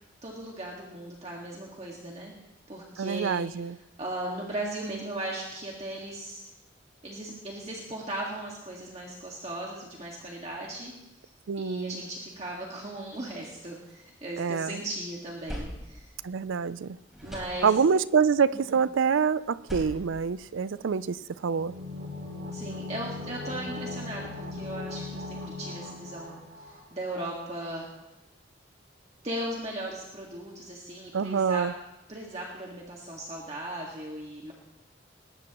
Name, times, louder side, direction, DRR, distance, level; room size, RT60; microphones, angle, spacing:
voice 1, 0.2-2.3 2.7-3.5 4.0-6.4 7.0-10.9 11.6-16.1 17.2-17.7 18.6-18.8 22.5-26.4 26.9-27.9 29.2-31.7 32.1-34.5, right 1 dB, 35° right, 1.8 m, -37 dB
voice 2, 3.0-3.8 11.5-12.0 14.4-14.8 16.2-17.0 17.6-21.7 31.1-31.7, right 6 dB, 90° right, 0.4 m, -26 dB
sound 1, 13.1-14.6 15.0-16.8 17.1-18.1 19.4-21.1, equal, ahead, 3.6 m, -43 dB
sound 2, 21.5-27.2 27.5-27.6, left 3 dB, 50° right, 2.8 m, -39 dB
20.5 x 18.0 x 3.0 m
head